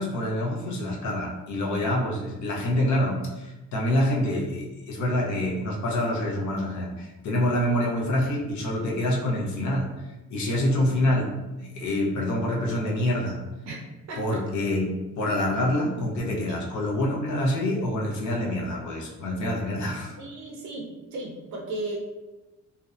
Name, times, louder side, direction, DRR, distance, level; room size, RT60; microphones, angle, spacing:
voice 1, 0.0-9.9 10.3-11.3 11.6-13.4 14.2-20.1, left 1 dB, 70° left, -2 dB, 0.7 m, -26 dB
voice 2, 14.1-14.4 20.2-22.0, right 2 dB, 70° right, -1 dB, 0.6 m, -35 dB
2.6 x 2.1 x 2.4 m, 1.1 s
cardioid pair, 90°, 30 cm